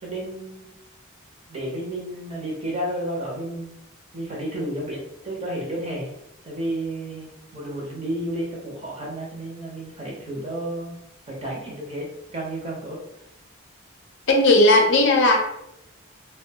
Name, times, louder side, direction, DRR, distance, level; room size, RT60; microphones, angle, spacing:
voice 1, 0.0-0.7 1.5-3.8 4.1-6.1 6.4-11.0 11.3-12.1 12.3-13.0, right 1 dB, 30° right, -3 dB, 0.7 m, -31 dB
voice 2, 14.3-15.4, left 2 dB, 60° left, 1 dB, 0.5 m, -16 dB
2.6 x 2.1 x 2.7 m, 0.82 s
head